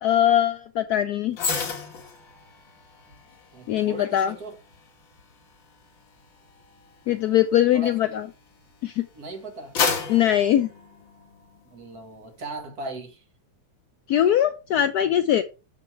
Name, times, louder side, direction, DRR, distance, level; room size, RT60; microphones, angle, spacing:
voice 1, 0.0-1.4 3.7-4.3 7.1-8.3 8.8-9.0 10.1-10.7 14.1-15.4, left 11 dB, 90° left, 0.8 m, -21 dB
sound 1, 1.3-8.7 9.2-11.6 11.9-12.2, left 5 dB, 65° left, 2.4 m, -33 dB
voice 2, 3.5-4.5 7.7-8.1 9.1-9.8 11.7-13.2 14.7-14.8, right 2 dB, 50° right, 1.9 m, -38 dB
6.7 x 6.0 x 4.5 m
omnidirectional pair, 2.2 m